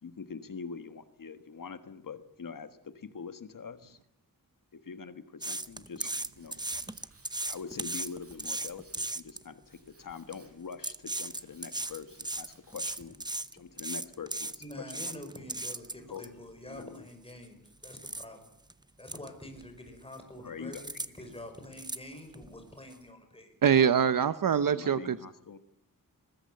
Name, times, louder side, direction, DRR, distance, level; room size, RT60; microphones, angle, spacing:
voice 1, 0.0-4.0 4.7-6.1 6.4-6.6 7.5-13.2 13.5-15.1 16.1-16.3 16.7-17.0 20.4-20.9 24.7-25.6, left 5 dB, 65° left, 10 dB, 1.6 m, -44 dB
sound 1, 5.4-9.4 10.1-10.3 10.7-16.3 16.8-16.9 17.3-17.5 17.8-18.3 18.7-18.8 19.1-19.3 19.6-20.2 20.7-21.1 21.4-22.5 22.9-23.0, right 2 dB, 10° right, 0.8 m, -36 dB
Tools, 5.9-13.3, right 3 dB, 40° right, 5.8 m, -60 dB
voice 2, 14.6-18.5 19.0-23.6, left 1 dB, 15° left, 5 dB, 5.8 m, -47 dB
voice 3, 23.6-25.2, right 8 dB, 70° right, 12 dB, 0.8 m, -24 dB
22.5 x 20.5 x 7.8 m, 0.75 s
wide cardioid pair, 130°, 35 cm